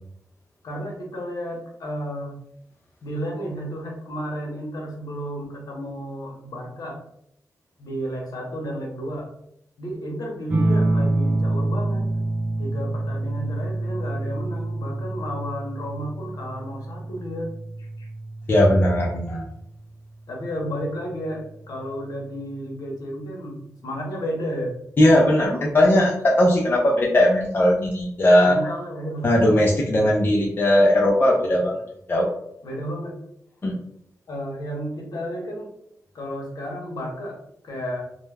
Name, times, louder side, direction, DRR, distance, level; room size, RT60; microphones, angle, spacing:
voice 1, 0.6-2.3 3.0-7.0 7.8-9.3 9.8-12.1 12.6-17.5 17.8-18.1 20.3-24.7 28.4-29.5 32.6-33.2 34.3-35.7 36.1-38.0, equal, 75° left, 0 dB, 0.8 m, -32 dB
sound 1, 10.5-19.6 21.0-21.6, right 2 dB, 30° right, 0.4 m, -27 dB
voice 2, 18.5-19.5 25.0-28.6 29.2-31.8 32.1-32.3 33.6-33.7, left 1 dB, 35° left, -3 dB, 0.4 m, -18 dB
2.2 x 2.1 x 3.2 m, 0.76 s
wide cardioid pair, 115°, 6 cm